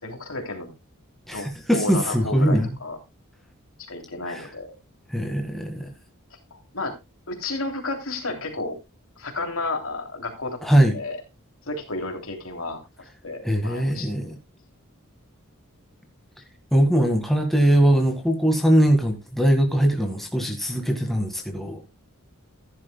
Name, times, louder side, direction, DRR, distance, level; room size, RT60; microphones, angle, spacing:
voice 1, 0.0-0.7 1.3-3.0 3.8-4.7 6.3-6.9 7.3-8.8 9.2-10.6 10.9-11.2 11.7-12.8 13.2-14.1, left 2 dB, 70° left, 3.1 m, -32 dB
voice 2, 1.3-2.7 4.3-4.5 5.1-5.9 10.6-10.9 13.4-14.4 16.7-21.8, right 1 dB, ahead, 1.8 m, -21 dB
15.0 x 11.0 x 2.3 m
head